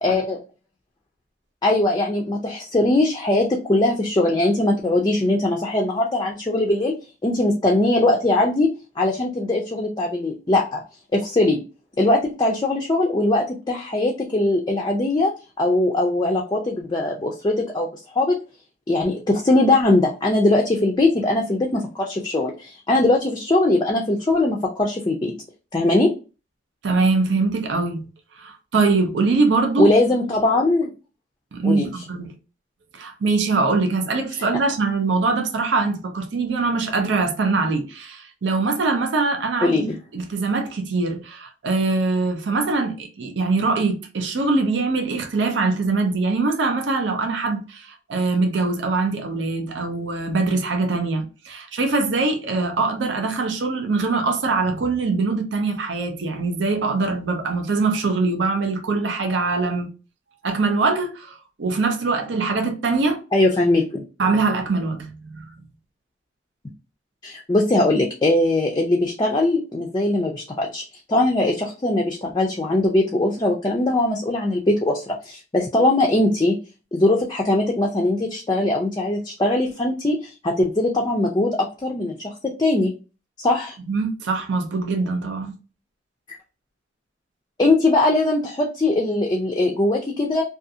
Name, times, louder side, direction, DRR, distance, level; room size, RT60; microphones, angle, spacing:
voice 1, 0.0-0.4 1.6-6.9 7.2-8.7 9.0-10.8 11.1-11.6 12.0-15.3 15.6-17.9 18.2-18.4 18.9-25.3 25.7-26.1 29.8-30.9 31.6-31.9 34.3-34.4 39.6-40.0 63.3-63.8 67.2-70.8 71.1-76.6 76.9-82.9 83.4-83.8 87.6-90.4, left 2 dB, 20° left, 0.3 m, -20 dB
voice 2, 26.8-28.1 28.4-29.9 31.5-32.3 32.9-39.9 40.1-59.9 60.4-63.2 64.2-65.5 83.9-85.5, right 3 dB, 80° right, 0.5 m, -23 dB
2.5 x 2.4 x 2.6 m
head